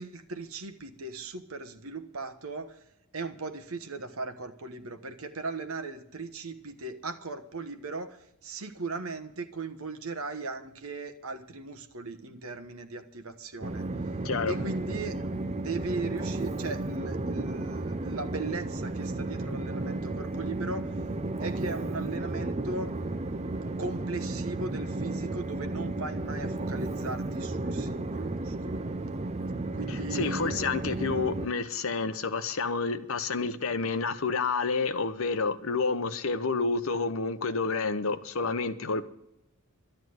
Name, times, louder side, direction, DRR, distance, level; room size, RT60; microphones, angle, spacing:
voice 1, 0.0-2.8 3.1-13.8 14.5-15.2 15.6-20.9 21.4-22.9 23.8-28.8 29.7-30.7, right 3 dB, 70° right, 8 dB, 1.3 m, -38 dB
Train, 13.6-31.5, right 2 dB, 30° right, 0.6 m, -33 dB
voice 2, 14.2-14.6 29.9-39.0, left 4 dB, 65° left, 11 dB, 0.9 m, -29 dB
12.0 x 10.0 x 7.9 m, 0.89 s
head